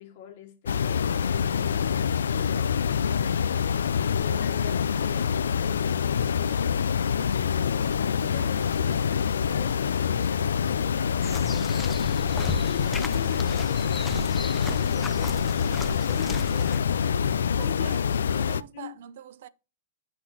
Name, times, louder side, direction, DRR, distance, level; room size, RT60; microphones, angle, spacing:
voice 1, 0.0-3.2 4.0-17.2 17.5-18.9, left 10 dB, 60° left, 1.7 m, -44 dB
sound 1, 0.6-18.6, left 7 dB, 90° left, 0.3 m, -26 dB
voice 2, 8.2-8.5 17.6-18.0 18.3-19.5, right 11 dB, 65° right, 0.5 m, -43 dB
sound 2, 8.4-14.4, right 2 dB, 10° right, 1.0 m, -52 dB
sound 3, 11.2-16.8, left 3 dB, 15° left, 0.7 m, -36 dB
8.3 x 5.9 x 2.8 m
hypercardioid pair, 130°, 0 cm